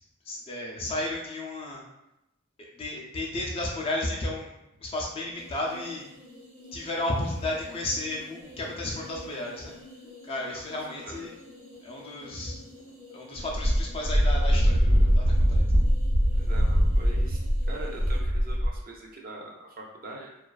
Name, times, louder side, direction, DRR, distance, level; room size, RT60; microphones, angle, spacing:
voice 1, 0.3-1.8 2.7-4.5 4.8-6.0 6.7-9.7 10.2-11.3 11.8-12.6 13.1-15.2 15.5-15.8, left 1 dB, 25° left, -2 dB, 0.3 m, -33 dB
sound 1, 5.3-18.2, left 1 dB, 70° right, 0.8 m, -49 dB
voice 2, 10.9-11.3 16.4-20.4, right 2 dB, 40° right, -1 dB, 0.4 m, -43 dB
Wind, 13.5-18.8, equal, 85° right, 1.1 m, -22 dB
2.3 x 2.3 x 2.3 m, 0.87 s
head